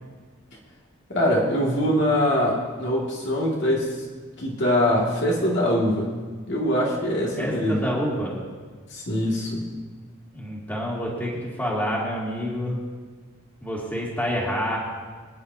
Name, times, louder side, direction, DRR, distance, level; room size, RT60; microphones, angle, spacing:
voice 1, 1.1-3.9 4.4-6.1 6.5-7.8 8.9-9.7, equal, 50° left, -3 dB, 2.2 m, -23 dB
voice 2, 7.4-8.4 10.3-12.8 13.6-14.8, equal, 10° left, -5 dB, 2.4 m, -28 dB
24.5 x 9.9 x 2.8 m, 1.5 s
head